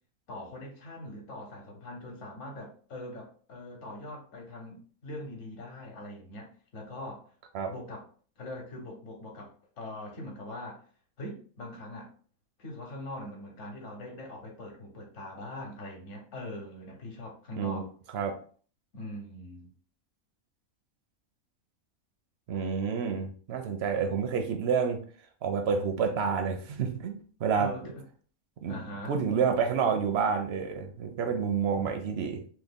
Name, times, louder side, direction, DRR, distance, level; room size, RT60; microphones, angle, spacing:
voice 1, 0.3-7.3 7.7-8.1 8.4-10.9 11.2-12.1 12.6-17.9 18.9-19.7 27.6-28.0 28.7-29.2, left 1 dB, 65° left, 0 dB, 1.1 m, -42 dB
voice 2, 22.5-25.0 25.4-27.7 28.6-28.8 29.1-32.4, right 6 dB, 65° right, 5 dB, 0.6 m, -29 dB
3.1 x 2.2 x 3.5 m, 0.43 s
omnidirectional pair, 1.5 m